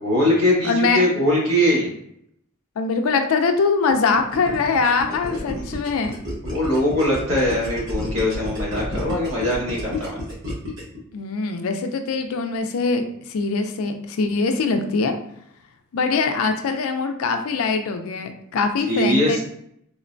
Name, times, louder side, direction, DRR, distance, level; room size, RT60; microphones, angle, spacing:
voice 1, 0.0-1.9 5.1-5.7 6.5-10.2 18.9-19.4, left 1 dB, 80° right, -5 dB, 1.3 m, -21 dB
voice 2, 0.6-1.0 2.8-6.2 11.1-13.0 13.3-15.1 15.9-19.4, left 4 dB, 75° left, 6 dB, 0.4 m, -22 dB
Gurgling, 3.9-11.0, left 1 dB, 60° right, 1.2 m, -31 dB
3.6 x 2.1 x 2.5 m, 0.72 s
head